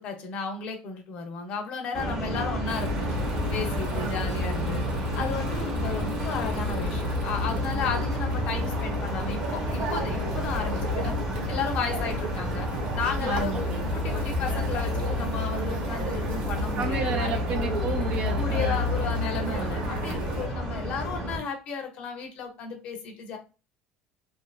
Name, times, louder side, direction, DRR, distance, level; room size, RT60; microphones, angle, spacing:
voice 1, 0.0-2.9 3.5-4.8 5.1-11.1 11.5-12.7 12.9-13.6 13.9-17.4 18.3-23.4, left 5 dB, 45° left, 0.6 m, -34 dB
sound 1, 1.9-21.4, equal, 15° right, 0.8 m, -32 dB
sound 2, 2.7-20.5, left 1 dB, 85° right, 1.0 m, -31 dB
voice 2, 3.9-4.3 12.2-12.4 13.2-13.9 16.8-18.9, right 5 dB, 40° right, 0.4 m, -33 dB
2.6 x 2.5 x 2.3 m
cardioid pair, 165°, 3 cm